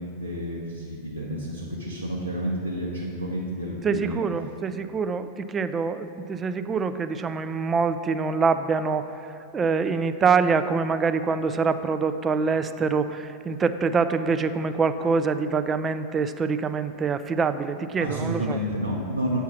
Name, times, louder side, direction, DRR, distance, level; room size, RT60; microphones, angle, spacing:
voice 1, 0.0-4.2 18.0-19.4, equal, 85° right, -5 dB, 0.8 m, -30 dB
voice 2, 3.8-18.6, right 5 dB, 20° right, 11 dB, 0.3 m, -25 dB
8.3 x 4.5 x 5.9 m, 2.4 s
figure-of-eight pair, 90°, 0 cm